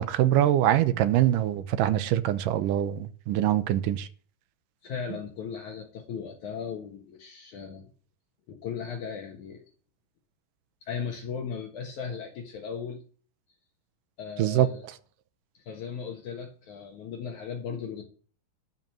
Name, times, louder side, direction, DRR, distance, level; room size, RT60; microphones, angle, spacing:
voice 1, 0.0-4.1 14.4-14.7, right 12 dB, 80° right, 2.3 m, -24 dB
voice 2, 4.8-7.9 8.5-9.6 10.8-13.0 14.2-14.8 15.5-18.0, left 6 dB, 65° left, 2.7 m, -37 dB
12.5 x 5.4 x 7.6 m
omnidirectional pair, 3.9 m